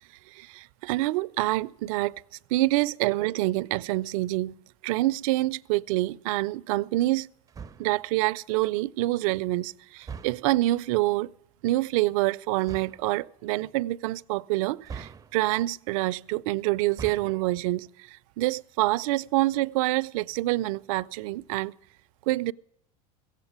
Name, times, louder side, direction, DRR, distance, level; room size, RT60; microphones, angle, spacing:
voice 1, 0.3-2.2 2.5-4.6 4.8-7.3 7.8-11.3 11.6-21.7 22.3-22.5, right 18 dB, 70° right, 0.5 m, -26 dB
sound 1, 7.5-8.0 10.0-10.6 12.6-13.1 14.8-15.6 16.8-17.5, right 6 dB, 20° right, 0.5 m, -42 dB
16.0 x 8.2 x 9.5 m
supercardioid pair, 105°, 18 cm